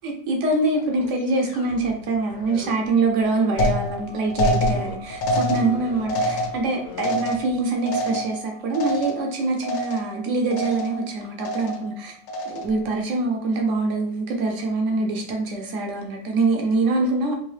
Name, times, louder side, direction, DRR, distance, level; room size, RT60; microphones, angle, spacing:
voice 1, 0.0-12.1 12.5-17.3, right 3 dB, 75° right, 2 dB, 0.6 m, -24 dB
sound 1, 0.5-7.6, left 3 dB, 65° left, 1.1 m, -41 dB
sound 2, 3.6-9.4 9.6-10.2 10.5-11.1 11.4-11.9 12.3-12.8, equal, 90° left, 1.4 m, -26 dB
3.7 x 2.7 x 3.1 m, 0.65 s
omnidirectional pair, 1.9 m